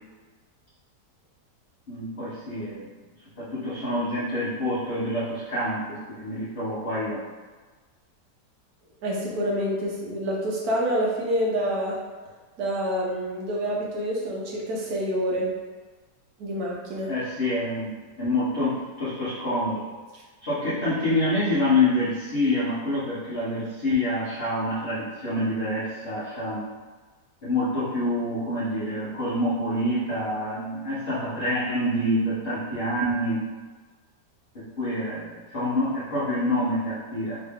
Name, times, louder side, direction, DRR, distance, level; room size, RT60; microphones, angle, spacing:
voice 1, 1.9-2.8 3.4-7.2 17.1-19.8 20.4-26.7 27.4-33.5 34.5-37.4, left 1 dB, 45° left, -10 dB, 0.8 m, -27 dB
voice 2, 9.0-12.0 12.6-15.5 16.4-17.1, equal, 65° right, -3 dB, 1.3 m, -27 dB
3.2 x 2.9 x 3.5 m, 1.4 s
omnidirectional pair, 1.9 m